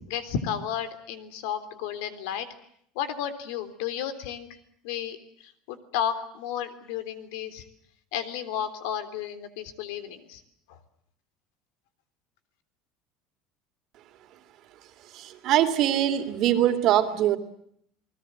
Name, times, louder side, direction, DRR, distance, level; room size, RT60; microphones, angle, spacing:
voice 1, 0.1-2.5 3.0-4.5 4.8-7.6 8.1-10.4 10.7-10.8, left 9 dB, 80° left, 11 dB, 3.5 m, -33 dB
voice 2, 15.1-17.4, right 11 dB, 45° right, 8 dB, 2.9 m, -23 dB
29.5 x 20.5 x 7.7 m, 0.69 s
cardioid pair, 160°, 0 cm